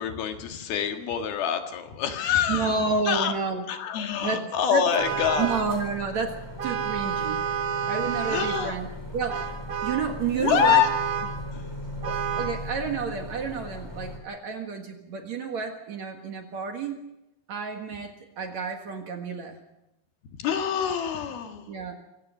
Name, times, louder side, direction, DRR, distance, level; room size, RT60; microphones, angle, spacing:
voice 1, 0.0-3.3 3.7-5.5 8.3-8.7 10.4-10.9 11.5-11.6 20.2-21.7, left 8 dB, 70° left, 5 dB, 3.5 m, -26 dB
voice 2, 2.5-3.7 4.2-4.4 4.7-4.8 5.4-7.5 7.9-8.9 9.1-9.6 9.8-10.8 12.0-17.0 17.5-19.6 21.7-22.0, right 5 dB, 55° right, 4 dB, 2.4 m, -30 dB
Vehicle horn car horn honking, 4.9-5.8 6.6-8.8 9.3-10.1 10.6-11.4 12.0-12.6, right 7 dB, 70° right, 1.3 m, -30 dB
sound 1, 5.0-14.2, left 1 dB, 5° left, 3.7 m, -38 dB
26.0 x 16.5 x 6.5 m, 0.90 s
omnidirectional pair, 4.6 m